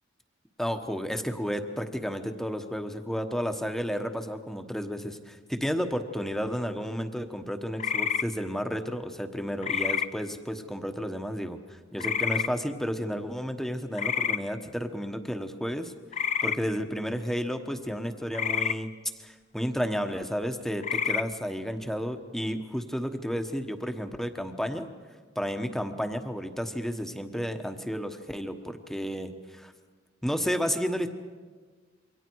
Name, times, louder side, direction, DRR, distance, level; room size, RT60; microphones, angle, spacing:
voice 1, 0.6-11.6 11.9-15.9 16.4-18.9 19.2-24.9 25.3-29.7 30.2-31.1, equal, ahead, 6 dB, 1.2 m, -32 dB
sound 1, 7.8-8.2 9.6-10.1 12.0-12.5 13.9-14.4 16.1-16.6 18.3-18.8 20.8-21.2, left 7 dB, 40° left, 0.6 m, -28 dB
27.5 x 23.5 x 4.7 m, 1.5 s
head